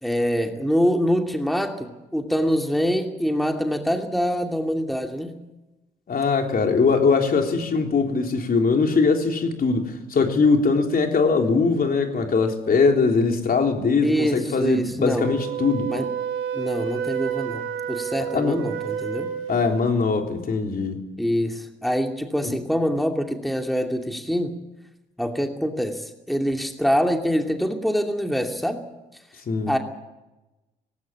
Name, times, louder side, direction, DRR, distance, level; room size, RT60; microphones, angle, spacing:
voice 1, 0.0-5.3 14.0-15.3 15.9-16.1 16.5-19.3 21.2-24.5 25.2-28.8 29.7-29.8, equal, ahead, 2.6 m, -25 dB
voice 2, 6.1-15.9 18.3-18.6 19.5-21.1 22.4-22.6 29.5-29.7, left 4 dB, 45° left, 3.6 m, -21 dB
Wind instrument woodwind instrument, 15.1-19.9, right 8 dB, 80° right, 2.5 m, -30 dB
19.0 x 18.0 x 8.5 m
hypercardioid pair, 55°, 20 cm